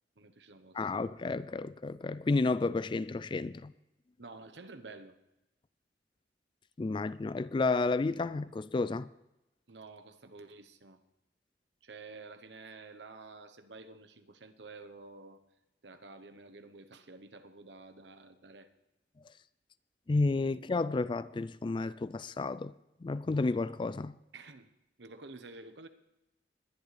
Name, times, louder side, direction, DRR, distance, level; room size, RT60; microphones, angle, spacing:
voice 1, 0.2-1.1 4.2-5.2 9.7-11.0 11.8-15.4 15.8-18.7 24.3-24.7 25.0-25.9, right 3 dB, 80° right, 1.0 m, -50 dB
voice 2, 0.7-3.7 6.8-9.1 20.1-22.7 23.0-24.2, left 3 dB, 30° left, 0.3 m, -31 dB
21.0 x 10.5 x 3.3 m
head